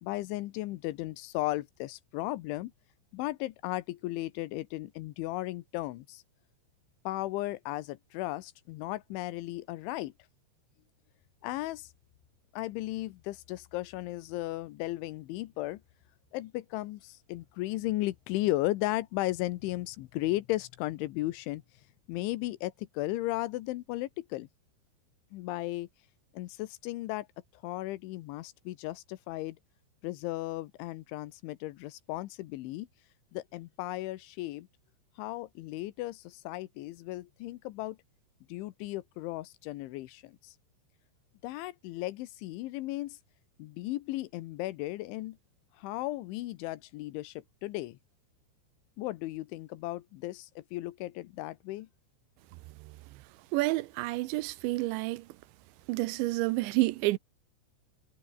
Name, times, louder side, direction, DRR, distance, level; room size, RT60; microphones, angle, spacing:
voice 1, 0.0-2.7 3.1-6.2 7.1-10.1 11.4-11.9 12.5-15.8 16.3-21.6 22.1-24.5 25.3-25.9 26.3-27.3 27.5-29.6 30.0-32.9 33.3-34.7 35.2-38.0 38.5-40.6 41.4-43.2 43.6-45.4 45.8-48.0 49.0-51.9, left 17 dB, 90° left, 3.4 m, -35 dB
voice 2, 53.5-55.3 55.9-57.2, right 19 dB, 85° right, 3.0 m, -29 dB
omnidirectional pair, 5.3 m